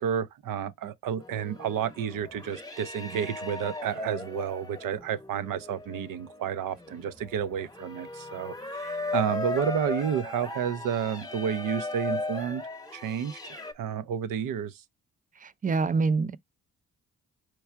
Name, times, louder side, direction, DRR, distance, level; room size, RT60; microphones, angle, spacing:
voice 1, 0.0-12.6 12.9-14.8, right 8 dB, 70° right, 0.6 m, -31 dB
sound 1, 1.2-13.7, left 2 dB, 10° left, 1.0 m, -37 dB
voice 2, 15.4-16.4, right 4 dB, 25° right, 0.4 m, -26 dB
4.6 x 2.3 x 4.4 m
cardioid pair, 65°, 34 cm